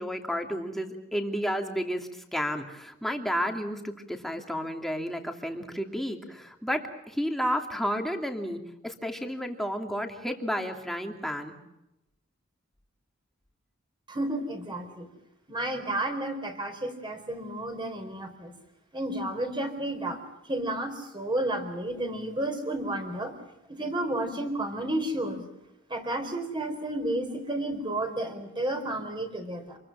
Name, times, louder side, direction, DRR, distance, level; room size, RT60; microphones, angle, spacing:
voice 1, 0.0-11.5, equal, ahead, 3 dB, 2.7 m, -32 dB
voice 2, 14.1-15.1 15.5-18.5 18.9-20.2 20.5-23.3 23.7-25.4 25.9-29.8, right 1 dB, 25° right, 6 dB, 4.5 m, -31 dB
28.0 x 22.0 x 7.5 m, 0.90 s
head